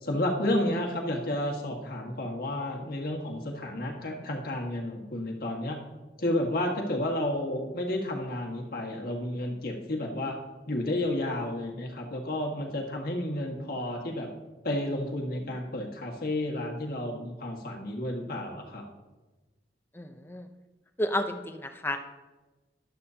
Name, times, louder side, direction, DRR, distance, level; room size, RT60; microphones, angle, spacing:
voice 1, 0.0-5.8 6.2-10.4 10.7-14.3 14.6-18.8, left 1 dB, 55° left, 0 dB, 1.7 m, -31 dB
voice 2, 19.9-20.5 21.0-22.0, left 1 dB, 10° left, 6 dB, 0.6 m, -31 dB
12.0 x 12.0 x 2.8 m, 1.2 s
head